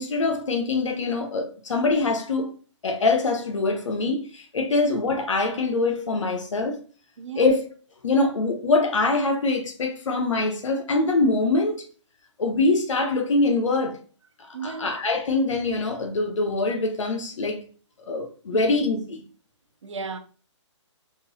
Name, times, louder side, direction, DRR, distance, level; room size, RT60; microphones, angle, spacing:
voice 1, 0.0-2.5 2.8-6.8 7.4-7.7 8.0-11.9 12.4-14.0 14.4-17.6 18.1-19.2, left 3 dB, 80° left, 0.8 m, -24 dB
voice 2, 14.5-14.9 18.5-18.6 19.8-20.2, right 5 dB, 75° right, 0.7 m, -34 dB
3.8 x 2.6 x 2.6 m
hypercardioid pair, 165°, 16 cm